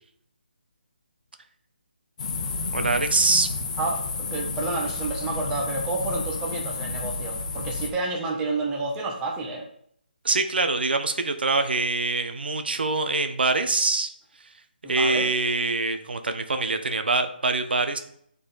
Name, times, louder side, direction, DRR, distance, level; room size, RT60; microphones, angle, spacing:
sound 1, 2.2-7.9, left 4 dB, 45° left, 1.0 m, -31 dB
voice 1, 2.7-3.5 10.2-14.1 14.9-18.0, right 3 dB, 75° right, 8 dB, 0.8 m, -24 dB
voice 2, 3.8-9.7 14.8-15.3, right 3 dB, 10° right, -1 dB, 1.0 m, -30 dB
7.6 x 4.1 x 4.0 m, 0.68 s
hypercardioid pair, 160°, 6 cm